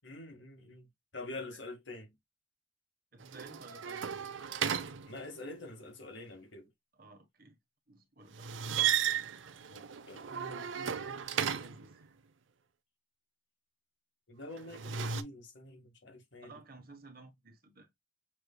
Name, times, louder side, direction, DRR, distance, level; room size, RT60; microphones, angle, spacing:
voice 1, 0.0-0.9 1.1-2.1 5.0-6.7 9.7-10.6 14.3-16.5, left 2 dB, 70° left, 1.7 m, -46 dB
voice 2, 3.1-4.1 6.9-7.6 7.9-8.5 10.3-12.2 14.5-15.0 16.4-17.9, right 3 dB, 45° right, 1.2 m, -54 dB
sound 1, 3.2-5.6 8.3-11.9 14.6-15.2, right 8 dB, 80° right, 0.6 m, -35 dB
6.2 x 3.3 x 2.2 m
head